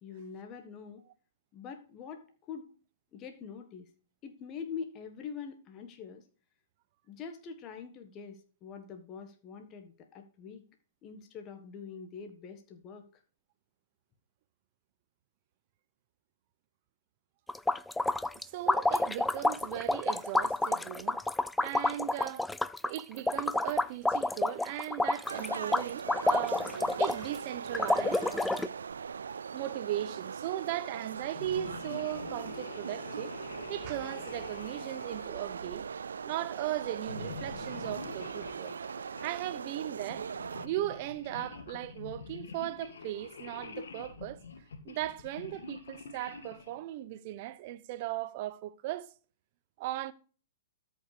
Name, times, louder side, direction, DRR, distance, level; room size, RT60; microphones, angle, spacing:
voice 1, 0.0-1.0 1.5-2.7 3.1-3.9 4.2-6.2 7.1-10.6 11.0-13.2, left 6 dB, 30° left, 1.5 m, -44 dB
sound 1, 17.5-27.4 27.7-28.7, left 2 dB, 5° left, 0.4 m, -29 dB
voice 2, 18.5-21.2 21.6-22.5 22.8-28.7 29.5-33.3 33.7-35.8 36.2-38.8 39.2-40.3 40.6-44.4 44.8-49.1 49.8-50.1, right 14 dB, 45° right, 0.9 m, -37 dB
sound 2, 25.3-40.7, right 6 dB, 80° right, 0.4 m, -40 dB
sound 3, 31.3-36.2 37.0-39.3 40.0-46.8, left 5 dB, 80° left, 1.8 m, -46 dB
13.0 x 5.5 x 5.0 m
hypercardioid pair, 125°, 0 cm